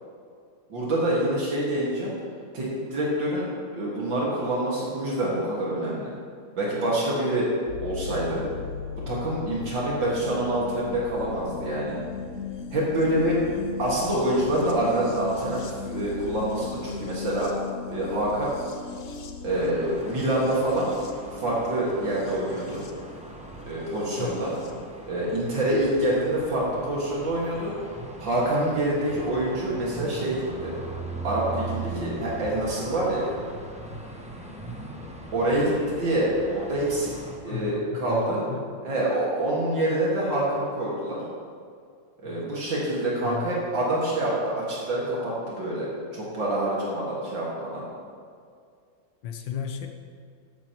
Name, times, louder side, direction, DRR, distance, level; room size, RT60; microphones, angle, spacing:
voice 1, 0.7-2.1 2.5-3.5 3.7-6.1 6.6-7.5 7.8-8.4 9.1-12.0 12.7-13.4 13.8-17.5 17.9-18.5 19.4-20.9 21.4-22.8 23.7-24.5 25.1-27.7 28.2-30.7 31.2-33.3 35.3-37.1 37.4-38.5 38.8-41.2 42.2-45.9 46.1-47.8, right 1 dB, 70° right, -6 dB, 2.6 m, -26 dB
sound 1, 7.7-24.7 25.9-26.0, left 6 dB, 55° left, 1.0 m, -38 dB
sound 2, 19.5-37.4, right 2 dB, 5° right, 0.5 m, -39 dB
voice 2, 37.4-38.7 42.2-42.6 43.2-43.5 49.2-49.9, left 8 dB, 75° left, 5 dB, 1.6 m, -35 dB
13.0 x 10.0 x 3.0 m, 2.2 s
omnidirectional pair, 2.1 m